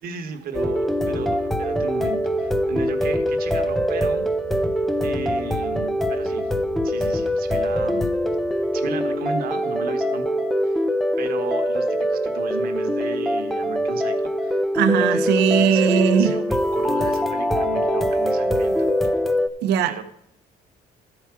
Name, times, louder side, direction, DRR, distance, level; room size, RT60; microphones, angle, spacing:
voice 1, 0.0-4.3 5.0-6.5 6.8-8.1 8.7-10.9 11.2-14.6 15.1-18.9 19.8-20.0, right 5 dB, 65° right, 1.1 m, -35 dB
sound 1, 0.5-19.5, equal, ahead, 0.6 m, -23 dB
voice 2, 14.7-16.4 19.6-20.0, right 8 dB, 80° right, 0.7 m, -19 dB
13.5 x 4.8 x 5.8 m
cardioid pair, 110°, 17 cm